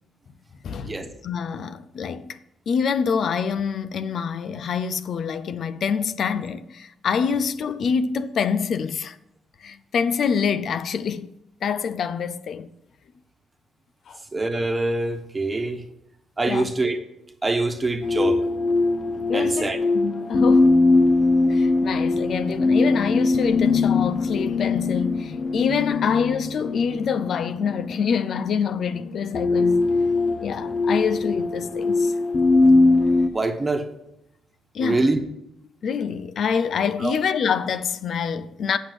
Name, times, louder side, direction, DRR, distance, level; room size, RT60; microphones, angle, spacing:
voice 1, 0.6-1.0 1.2-2.4 2.7-9.2 9.6-11.3 11.6-12.7 14.1-14.2 16.5-16.7 19.3-20.7 21.5-29.9 30.4-32.1 34.7-35.1 35.8-38.8, left 6 dB, 60° left, 0.5 m, -26 dB
voice 2, 14.3-15.8 16.4-17.0 17.4-18.4 19.3-19.8 33.3-33.9 34.8-35.2 37.0-37.2, right 2 dB, 25° right, 1.3 m, -24 dB
sound 1, 18.0-33.3, left 3 dB, 40° left, 0.9 m, -21 dB
7.9 x 6.3 x 7.7 m
cardioid pair, 90°, 0 cm